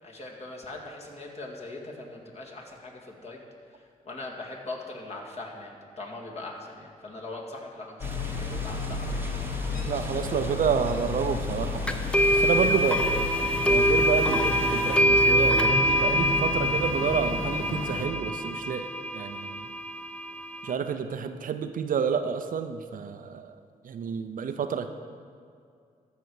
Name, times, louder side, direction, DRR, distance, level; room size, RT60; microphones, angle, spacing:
voice 1, 0.0-3.4 3.7-9.1, left 2 dB, 45° left, -2 dB, 2.1 m, -41 dB
sound 1, 8.0-18.1, left 3 dB, 65° left, 1.3 m, -32 dB
sound 2, 8.0-15.0, right 1 dB, 15° right, 1.0 m, -42 dB
voice 2, 9.9-12.0 12.3-13.0 13.7-19.7 20.6-23.5 23.8-24.9, right 6 dB, 60° right, 8 dB, 0.6 m, -29 dB
sound 3, 11.9-20.7, equal, 5° left, 0.7 m, -25 dB
14.0 x 5.5 x 4.8 m, 2.3 s
cardioid pair, 65°, 16 cm